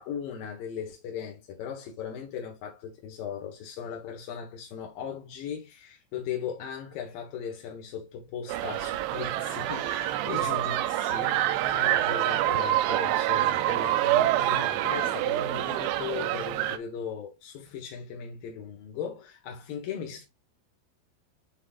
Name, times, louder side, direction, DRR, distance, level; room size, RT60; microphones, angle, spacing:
voice 1, 0.0-20.2, left 7 dB, 70° left, 2.2 m, -38 dB
sound 1, 8.5-16.8, right 13 dB, 80° right, 3.0 m, -26 dB
11.0 x 3.7 x 2.4 m
omnidirectional pair, 5.8 m